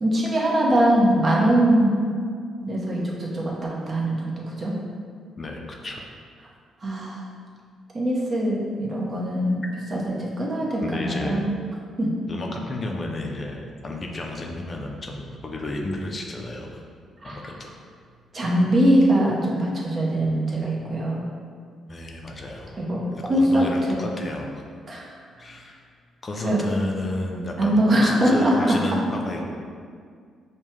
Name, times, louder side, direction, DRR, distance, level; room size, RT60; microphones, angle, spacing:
voice 1, 0.0-2.0 2.6-4.7 6.8-7.2 7.9-9.6 9.9-11.5 12.0-12.1 17.2-17.4 18.3-21.2 22.8-24.0 24.9-25.0 26.4-26.6 27.6-28.6, right 1 dB, 40° right, -4 dB, 0.8 m, -22 dB
voice 2, 5.4-6.1 10.8-11.4 12.3-16.8 17.2-17.7 21.9-22.7 23.1-24.6 25.4-25.8 26.2-29.5, left 2 dB, 35° left, 0 dB, 0.4 m, -32 dB
5.3 x 2.2 x 3.1 m, 2.1 s
cardioid pair, 90°, 0 cm